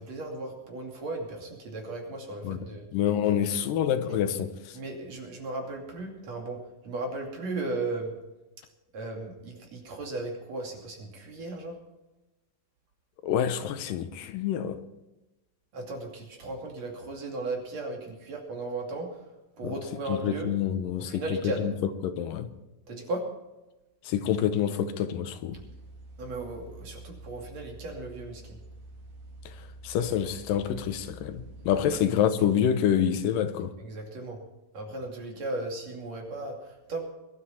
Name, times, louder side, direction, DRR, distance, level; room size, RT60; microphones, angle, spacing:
voice 1, 0.0-2.8 4.7-6.6 6.8-8.1 8.9-11.8 15.7-19.1 19.6-20.5 21.0-21.7 22.9-23.2 26.2-28.6 31.9-32.0 33.8-34.4 34.7-37.0, right 2 dB, 50° right, 3.6 m, -36 dB
voice 2, 2.4-4.8 13.2-14.8 19.6-19.8 20.1-21.7 22.0-22.5 24.1-25.6 29.8-33.7, left 9 dB, 80° left, 2.4 m, -27 dB
sound 1, 25.5-32.0, right 2 dB, 75° right, 3.8 m, -47 dB
22.0 x 12.0 x 4.3 m
omnidirectional pair, 4.0 m